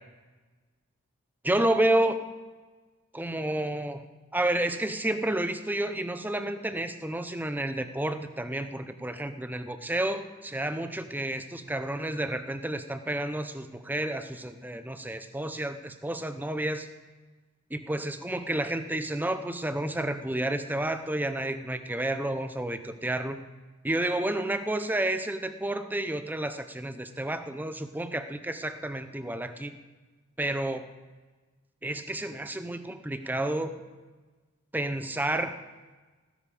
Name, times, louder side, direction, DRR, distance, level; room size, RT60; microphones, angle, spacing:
voice 1, 1.4-2.3 3.1-4.1 4.3-16.9 17.7-23.4 23.8-29.8 30.4-30.8 31.8-33.7 34.7-35.6, right 1 dB, 10° right, 9 dB, 0.7 m, -30 dB
18.5 x 10.5 x 5.0 m, 1.3 s
head